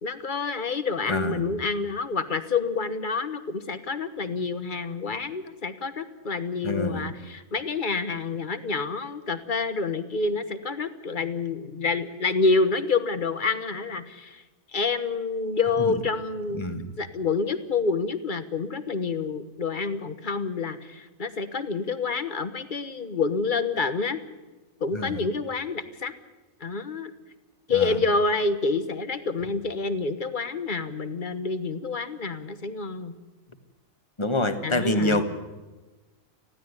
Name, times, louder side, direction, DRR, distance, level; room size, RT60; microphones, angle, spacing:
voice 1, 0.0-14.4 14.7-16.6 17.0-24.2 24.8-26.1 26.6-27.1 27.7-33.1 34.6-35.2, left 4 dB, 40° left, 11 dB, 1.3 m, -28 dB
voice 2, 1.1-1.5 6.6-7.1 15.9-16.0 16.5-16.9 24.9-25.2 27.7-28.0 34.2-35.3, left 1 dB, 20° left, 8 dB, 1.6 m, -26 dB
19.5 x 15.5 x 9.6 m, 1.2 s
omnidirectional pair, 1.4 m